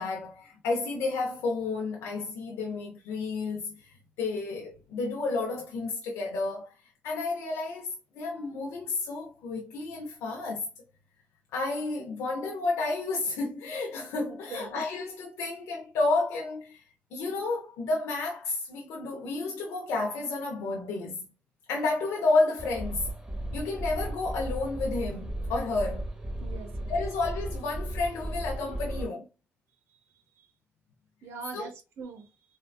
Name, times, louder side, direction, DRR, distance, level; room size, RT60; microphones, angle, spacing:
voice 1, 0.0-6.7 7.0-10.7 11.5-21.3 21.7-23.1 23.5-26.1 26.9-29.3 31.5-31.7, left 3 dB, 90° left, 0.5 m, -31 dB
voice 2, 14.3-14.8 26.4-26.9 31.2-32.3, right 5 dB, 80° right, 0.7 m, -42 dB
sound 1, 22.6-29.1, right 1 dB, 15° right, 0.9 m, -35 dB
3.4 x 2.2 x 2.3 m
supercardioid pair, 55°, 4 cm